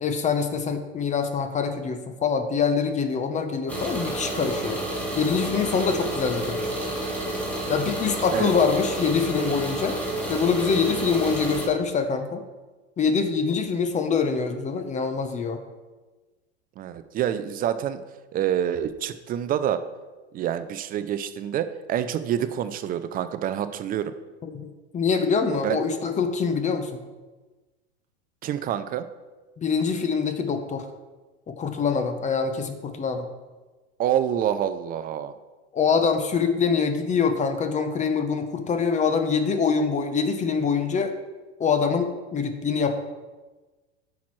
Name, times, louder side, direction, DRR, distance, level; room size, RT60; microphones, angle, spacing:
voice 1, 0.0-4.8 5.1-6.6 7.7-10.0 10.3-12.4 13.0-15.6 24.4-27.0 29.6-30.9 31.5-33.3 35.7-41.1 41.6-43.0, left 5 dB, 20° left, 7 dB, 0.7 m, -24 dB
sound 1, 3.7-11.7, right 1 dB, 5° left, 1.7 m, -30 dB
voice 2, 16.8-18.0 18.3-19.8 20.3-24.1 25.6-25.8 28.4-29.0 34.0-35.3, right 10 dB, 25° right, 12 dB, 0.4 m, -27 dB
10.0 x 6.0 x 3.1 m, 1.2 s
supercardioid pair, 115°, 33 cm